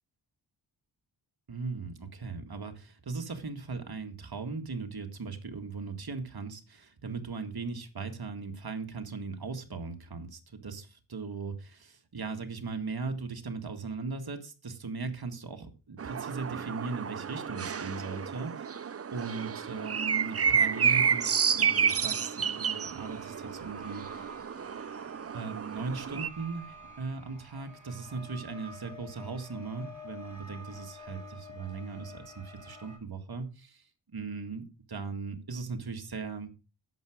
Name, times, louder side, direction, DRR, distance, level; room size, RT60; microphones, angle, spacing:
voice 1, 1.5-18.7 19.1-24.3 25.3-33.8 34.1-36.5, right 4 dB, 45° right, 6 dB, 2.0 m, -38 dB
sound 1, 16.0-26.3, right 7 dB, 30° right, 0.4 m, -30 dB
sound 2, 22.7-33.0, left 1 dB, 15° right, 5.4 m, -49 dB
11.0 x 7.6 x 5.1 m, 0.31 s
wide cardioid pair, 110°, 49 cm